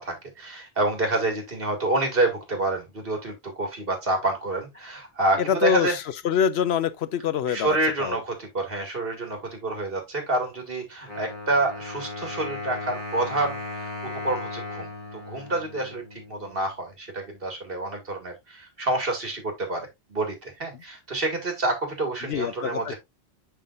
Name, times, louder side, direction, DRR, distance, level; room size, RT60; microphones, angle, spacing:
voice 1, 0.0-5.9 7.5-22.9, right 2 dB, 65° right, 2.4 m, -28 dB
voice 2, 5.4-8.2 22.2-22.9, left 8 dB, 85° left, 0.9 m, -25 dB
Wind instrument woodwind instrument, 11.1-16.7, left 2 dB, 45° right, 4.0 m, -37 dB
11.0 x 3.6 x 2.5 m
omnidirectional pair, 1.0 m